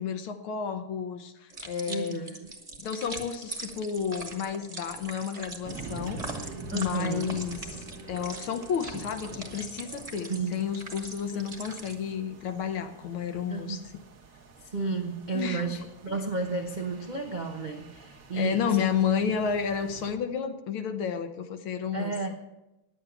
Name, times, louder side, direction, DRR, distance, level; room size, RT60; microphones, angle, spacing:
voice 1, 0.0-2.3 2.8-6.2 6.7-7.7 8.1-13.8 15.3-15.6 18.3-22.1, left 7 dB, 75° left, 8 dB, 1.8 m, -31 dB
sound 1, 1.5-11.9, right 2 dB, 20° right, 1.3 m, -42 dB
voice 2, 1.9-2.4 6.7-7.4 10.3-10.6 11.3-11.4 13.5-13.8 14.7-18.8 21.9-22.3, right 3 dB, 70° right, 3 dB, 0.4 m, -32 dB
sound 2, 5.6-20.1, right 3 dB, 45° right, 1.4 m, -46 dB
10.0 x 8.5 x 8.2 m, 0.96 s
omnidirectional pair, 2.4 m